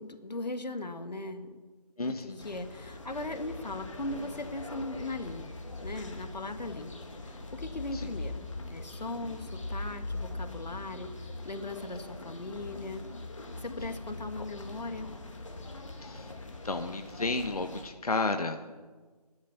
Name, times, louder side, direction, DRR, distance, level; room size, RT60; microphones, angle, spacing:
voice 1, 0.0-1.6 2.0-5.6 5.8-13.0 13.6-15.1, left 2 dB, 90° left, 8 dB, 1.7 m, -39 dB
voice 2, 2.0-2.5 6.7-6.8 7.9-8.1 16.0-16.3 16.6-18.7, left 3 dB, 65° left, 6 dB, 1.2 m, -32 dB
sound 1, 2.4-17.9, left 2 dB, 50° left, 1.9 m, -42 dB
14.5 x 11.5 x 7.0 m, 1.4 s
figure-of-eight pair, 175°, 21 cm